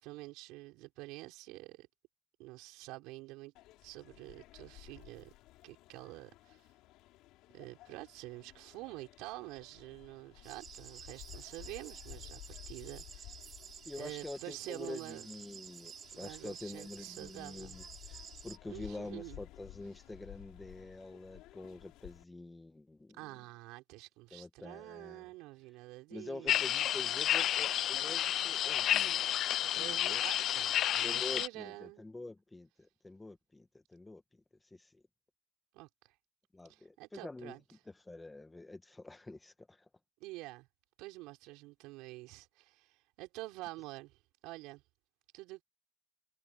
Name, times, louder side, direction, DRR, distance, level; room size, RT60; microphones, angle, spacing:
voice 1, 0.0-1.9 2.4-3.5 3.8-5.3 5.6-6.6 7.5-13.3 14.0-15.2 16.1-17.8 18.7-19.4 23.1-26.7 29.7-32.1 35.7-35.9 36.7-37.6 40.2-40.7 41.0-44.8 45.3-45.6, right 20 dB, 80° right, 4.5 m, -47 dB
sound 1, 3.5-22.2, left 17 dB, 70° left, 5.1 m, -55 dB
sound 2, 10.4-18.6, right 7 dB, 40° right, 1.8 m, -51 dB
voice 2, 13.8-23.2 24.3-25.3 26.1-29.2 29.8-30.2 31.0-34.2 34.7-35.0 36.5-37.6 38.0-39.8, left 2 dB, 15° left, 1.6 m, -47 dB
sound 3, 26.5-31.5, left 12 dB, 55° left, 0.3 m, -31 dB
supercardioid pair, 100°, 0 cm